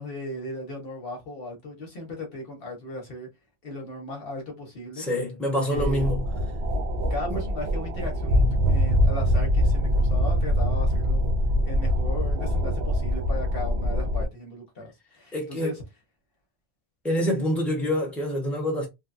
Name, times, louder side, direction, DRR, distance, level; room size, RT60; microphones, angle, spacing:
voice 1, 0.0-3.3 3.6-5.1 5.5-6.1 7.1-11.3 11.6-15.8, left 1 dB, 55° left, 1.1 m, -36 dB
voice 2, 5.0-6.2 15.3-15.8 17.0-18.9, equal, ahead, 1.0 m, -26 dB
sound 1, 5.7-14.3, equal, 65° right, 0.8 m, -24 dB
3.1 x 2.2 x 2.5 m
omnidirectional pair, 1.2 m